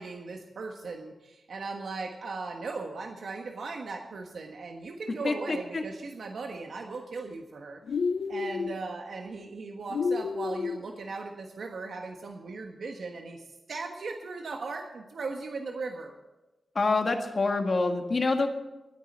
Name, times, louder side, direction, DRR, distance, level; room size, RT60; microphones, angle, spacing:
voice 1, 0.0-8.0 8.3-16.1, right 3 dB, 80° right, 3 dB, 1.3 m, -38 dB
voice 2, 5.2-5.8 16.8-18.5, left 3 dB, 45° left, 4 dB, 1.8 m, -26 dB
sound 1, 7.9-8.8 9.9-10.8, left 5 dB, 85° left, 0.6 m, -30 dB
13.0 x 9.7 x 7.3 m, 1.0 s
wide cardioid pair, 140°, 0 cm